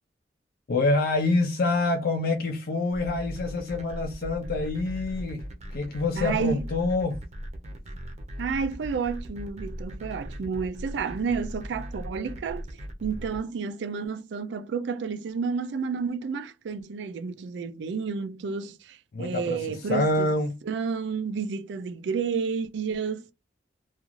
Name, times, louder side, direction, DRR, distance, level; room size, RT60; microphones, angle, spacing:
voice 1, 0.7-7.2 19.1-20.6, left 2 dB, 60° left, 0.4 m, -26 dB
sound 1, 2.9-13.4, equal, 40° right, 0.6 m, -38 dB
voice 2, 6.2-6.6 8.4-12.7 13.0-20.3 20.7-23.3, right 5 dB, 80° right, 0.4 m, -30 dB
2.4 x 2.4 x 3.0 m
head